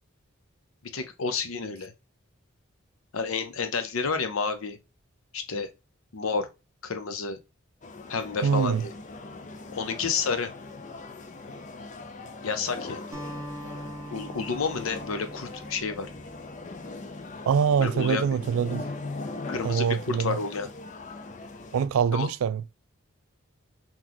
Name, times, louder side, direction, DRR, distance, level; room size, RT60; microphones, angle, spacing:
voice 1, 0.8-1.9 3.1-4.8 5.3-5.7 6.1-6.5 6.8-7.4 8.1-8.9 9.7-10.5 12.4-13.1 14.1-16.1 17.8-18.3 19.5-20.7 22.1-22.3, left 5 dB, 85° left, 0.7 m, -30 dB
sound 1, 7.8-21.9, left 3 dB, 35° left, 0.4 m, -40 dB
voice 2, 8.4-8.8 17.5-18.9 19.6-20.4 21.7-22.6, right 7 dB, 85° right, 0.3 m, -24 dB
Acoustic guitar, 13.1-17.6, right 1 dB, 15° right, 0.7 m, -43 dB
3.9 x 2.3 x 2.9 m
head